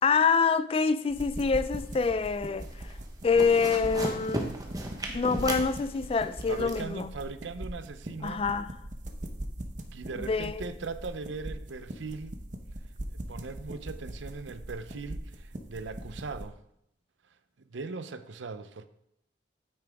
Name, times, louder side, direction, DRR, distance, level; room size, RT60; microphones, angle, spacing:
voice 1, 0.0-2.7 3.2-4.5 5.1-7.1 8.2-8.7 10.2-10.7, left 5 dB, 30° left, 0.3 m, -26 dB
sound 1, 1.1-16.5, right 1 dB, 40° right, 0.9 m, -41 dB
sound 2, 1.7-2.3 2.6-2.9 3.2-6.8, right 1 dB, 20° right, 1.0 m, -35 dB
voice 2, 6.5-8.4 9.9-12.4 13.1-16.6 17.6-18.9, right 4 dB, 90° right, 0.6 m, -39 dB
9.4 x 8.7 x 3.5 m
head